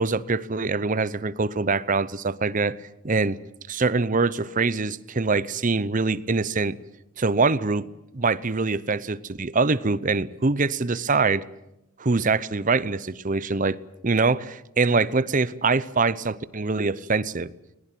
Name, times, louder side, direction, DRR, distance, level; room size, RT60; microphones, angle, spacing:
voice 1, 0.0-2.8 3.0-3.4 3.7-6.7 7.2-7.8 8.1-11.4 12.0-13.8 14.0-17.5, right 4 dB, 40° right, 0.8 m, -24 dB
20.0 x 20.0 x 9.1 m
head